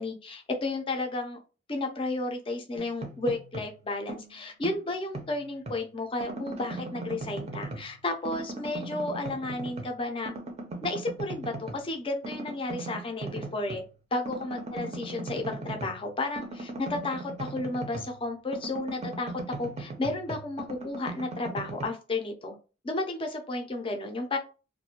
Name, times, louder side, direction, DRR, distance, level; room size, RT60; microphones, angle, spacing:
voice 1, 0.0-1.4 1.7-10.3 10.8-13.8 14.1-22.6 22.8-24.4, left 2 dB, 25° left, 3 dB, 0.5 m, -32 dB
sound 1, 2.8-3.8 4.1-5.8 6.2-8.0 8.2-10.0 10.3-11.8 12.2-13.9 14.2-18.2 18.5-21.9, right 2 dB, 30° right, 0.5 m, -39 dB
2.4 x 2.1 x 2.8 m, 0.33 s
head